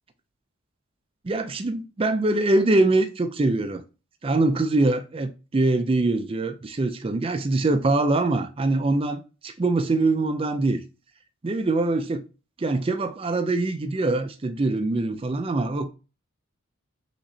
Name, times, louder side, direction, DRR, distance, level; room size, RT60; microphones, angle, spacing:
voice 1, 1.2-3.8 4.2-10.8 11.4-12.2 12.6-15.9, right 2 dB, 25° right, 0.4 m, -23 dB
5.9 x 3.0 x 2.7 m
head